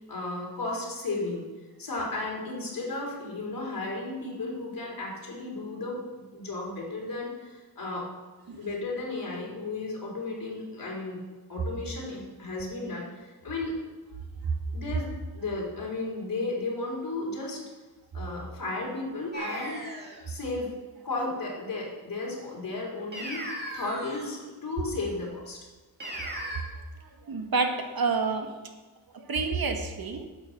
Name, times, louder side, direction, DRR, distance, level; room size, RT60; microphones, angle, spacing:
voice 1, 0.1-1.5 1.8-6.0 6.3-8.1 8.6-11.2 11.5-13.8 14.7-15.1 15.3-17.6 18.1-19.9 20.3-20.7 21.0-23.5 23.7-25.6, left 2 dB, 60° left, -3 dB, 4.1 m, -34 dB
sound 1, 19.3-20.2 23.1-24.4 26.0-26.6, right 1 dB, 25° right, 2.4 m, -37 dB
voice 2, 27.2-28.5 29.1-30.3, right 4 dB, 65° right, 4 dB, 1.4 m, -28 dB
11.5 x 8.5 x 6.0 m, 1.3 s
wide cardioid pair, 145°, 38 cm